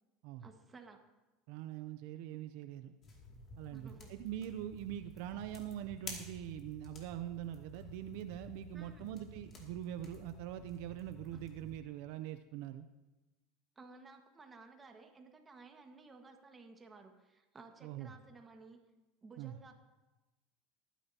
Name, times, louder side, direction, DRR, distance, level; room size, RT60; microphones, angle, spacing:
voice 1, 0.4-1.0 3.7-4.1 8.7-9.1 11.3-11.4 13.7-18.8 19.2-19.7, right 4 dB, 20° right, 3 dB, 1.6 m, -56 dB
voice 2, 1.5-2.9 3.6-12.9 17.8-18.1 19.4-19.6, right 12 dB, 70° right, 10 dB, 0.6 m, -43 dB
sound 1, 3.0-11.8, left 3 dB, 35° left, 2.5 m, -52 dB
20.0 x 10.0 x 2.9 m, 1.1 s
supercardioid pair, 125°, 0 cm